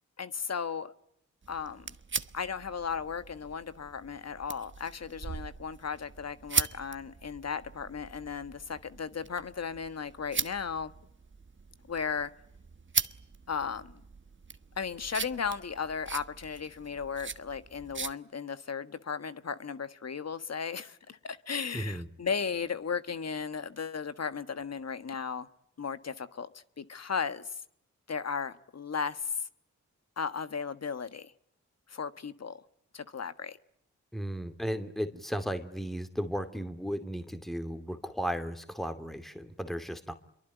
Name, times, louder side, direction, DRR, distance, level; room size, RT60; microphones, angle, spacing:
voice 1, 0.2-0.9 1.5-1.9 2.3-10.9 11.9-12.3 13.5-14.0 14.8-25.5 25.8-26.5 26.8-27.5 28.1-29.4 30.2-31.3 31.9-32.6 32.9-33.6, left 6 dB, 55° left, 13 dB, 1.4 m, -35 dB
sound 1, 1.4-18.1, right 5 dB, 40° right, 1.3 m, -39 dB
voice 2, 21.7-22.1 34.1-40.1, equal, ahead, 8 dB, 2.5 m, -35 dB
27.0 x 23.0 x 9.3 m, 0.74 s
cardioid pair, 55°, 31 cm